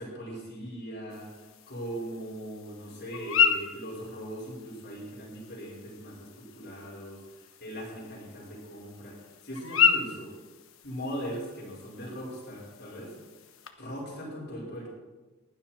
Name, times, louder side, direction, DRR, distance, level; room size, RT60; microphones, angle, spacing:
voice 1, 0.0-10.3 10.8-13.1 13.8-14.9, equal, 55° left, -5 dB, 5.6 m, -40 dB
sound 1, 1.1-13.7, left 7 dB, 75° left, 1.3 m, -33 dB
20.0 x 12.0 x 4.5 m, 1.2 s
head